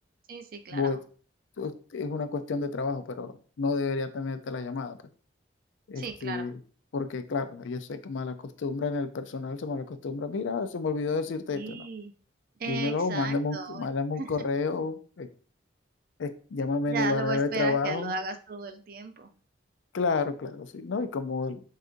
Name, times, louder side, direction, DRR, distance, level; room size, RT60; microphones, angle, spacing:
voice 1, 0.3-1.0 6.0-6.5 11.5-12.1 12.6-13.9 14.2-14.3 16.9-19.3, right 4 dB, 50° right, 8 dB, 0.5 m, -35 dB
voice 2, 1.6-5.0 5.9-6.5 6.9-11.9 12.7-15.3 16.2-18.1 19.9-21.6, left 4 dB, 80° left, 10 dB, 0.4 m, -30 dB
6.4 x 2.4 x 2.5 m, 0.41 s
head